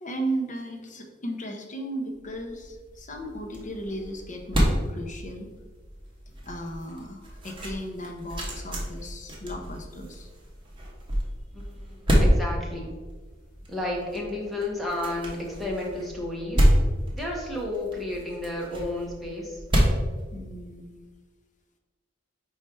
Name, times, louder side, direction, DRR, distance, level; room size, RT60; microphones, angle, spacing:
voice 1, 0.0-5.5 6.3-10.3 20.3-21.1, right 1 dB, 40° left, 3 dB, 0.8 m, -36 dB
sound 1, 2.2-21.0, equal, 25° right, 1.2 m, -28 dB
voice 2, 11.5-12.9 13.7-16.7 17.1-19.6, left 1 dB, ahead, -3 dB, 1.1 m, -32 dB
4.8 x 4.4 x 4.5 m, 1.4 s
head